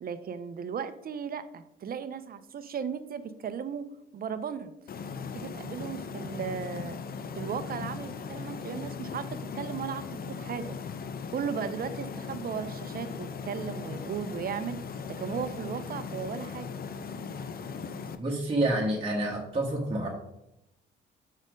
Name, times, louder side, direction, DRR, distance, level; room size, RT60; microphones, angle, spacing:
voice 1, 0.0-4.7 5.3-7.0 7.4-10.8 11.3-14.8 15.1-16.7, right 7 dB, 50° right, 12 dB, 0.6 m, -36 dB
sound 1, 4.9-18.2, left 5 dB, 50° left, 0.7 m, -38 dB
voice 2, 18.2-20.1, right 1 dB, 25° right, -3 dB, 1.4 m, -28 dB
6.3 x 4.2 x 5.1 m, 0.86 s
cardioid pair, 90°, 20 cm